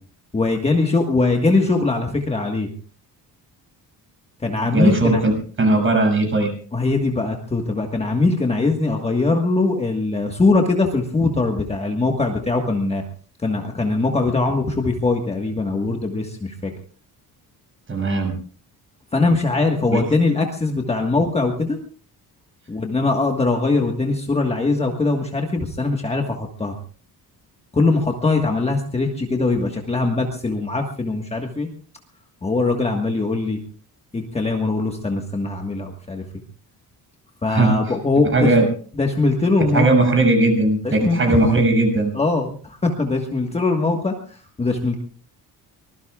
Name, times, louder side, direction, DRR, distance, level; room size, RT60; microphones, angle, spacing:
voice 1, 0.3-2.7 4.4-5.2 6.7-13.0 13.4-16.7 19.1-21.8 22.7-26.8 27.7-31.7 32.4-33.6 34.1-36.2 37.4-38.5 38.9-39.9 40.8-41.4 42.1-45.0, left 3 dB, 15° left, 2 dB, 1.5 m, -21 dB
voice 2, 4.7-5.3 5.6-6.5 17.9-18.3 19.9-20.0 37.5-37.8 38.3-38.6 39.7-42.1, right 2 dB, 30° right, 2 dB, 7.0 m, -18 dB
24.5 x 20.5 x 2.4 m, 0.43 s
cardioid pair, 160°, 39 cm